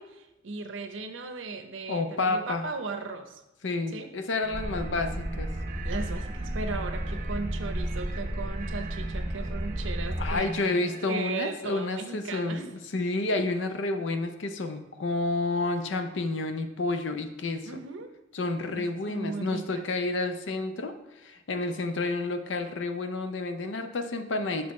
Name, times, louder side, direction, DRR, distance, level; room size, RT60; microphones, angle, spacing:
voice 1, 0.0-3.4 3.9-4.1 5.8-10.5 11.1-12.6 17.7-18.2 18.7-19.9, right 4 dB, 85° right, 7 dB, 0.7 m, -37 dB
voice 2, 1.9-2.7 3.6-5.5 10.2-17.8 18.3-24.7, left 2 dB, 75° left, 8 dB, 0.6 m, -30 dB
sound 1, 4.4-11.1, right 4 dB, 40° right, 0.4 m, -42 dB
sound 2, 4.5-10.4, equal, 15° right, 0.7 m, -33 dB
6.1 x 5.8 x 3.1 m, 0.98 s
head